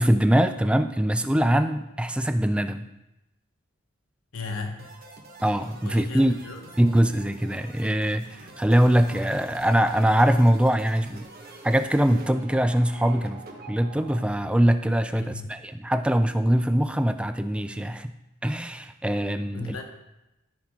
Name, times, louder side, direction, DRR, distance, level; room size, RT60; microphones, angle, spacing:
voice 1, 0.0-2.9 5.4-6.4 6.8-11.3 11.6-13.4 13.7-18.1 18.4-19.8, equal, 5° right, 9 dB, 0.3 m, -22 dB
voice 2, 4.3-4.9 5.8-6.6 15.1-15.5 19.5-19.8, left 4 dB, 80° left, 4 dB, 1.2 m, -36 dB
sound 1, 4.8-14.2, right 3 dB, 45° right, 1.2 m, -46 dB
12.5 x 5.6 x 3.7 m, 0.94 s
head